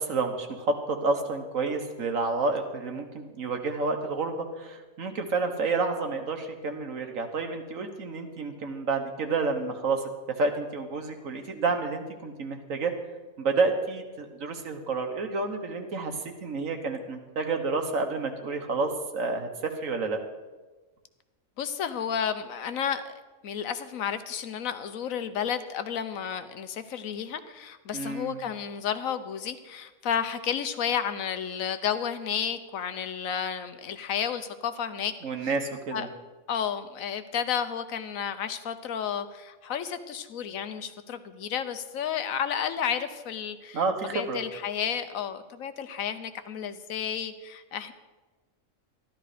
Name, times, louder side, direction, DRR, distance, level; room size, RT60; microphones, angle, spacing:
voice 1, 0.0-10.0 10.4-12.9 13.4-20.2 27.9-28.4 35.2-36.1 43.7-44.4, right 3 dB, 75° right, 5 dB, 1.7 m, -29 dB
voice 2, 21.6-23.1 23.4-35.1 35.9-36.1 36.5-43.8 44.1-47.9, left 8 dB, 85° left, 11 dB, 1.2 m, -32 dB
13.0 x 12.0 x 5.0 m, 1.2 s
omnidirectional pair, 1.4 m